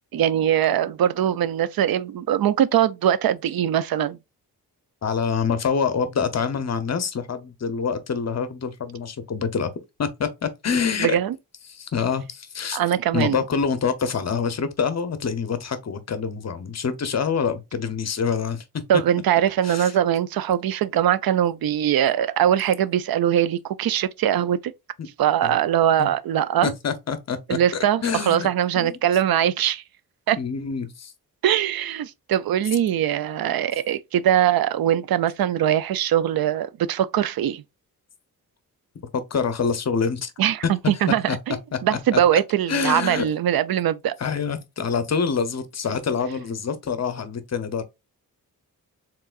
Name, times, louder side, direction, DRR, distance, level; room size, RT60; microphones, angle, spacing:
voice 1, 0.1-4.2 11.0-11.3 12.7-13.4 18.9-24.7 25.2-26.7 27.5-29.8 30.3-30.4 31.4-37.6 40.4-41.6 41.8-44.1, right 10 dB, 75° right, 0.5 m, -21 dB
voice 2, 5.0-9.7 10.0-11.2 11.7-12.8 13.1-18.6 18.9-19.0 19.6-19.9 25.4-25.6 26.0-26.1 26.6-27.6 28.0-28.5 28.7-29.0 30.4-31.1 39.1-40.3 41.1-41.4 41.7-42.2 42.7-43.3 44.2-47.8, left 6 dB, 45° left, 0.8 m, -26 dB
4.6 x 3.8 x 2.4 m
wide cardioid pair, 140°, 36 cm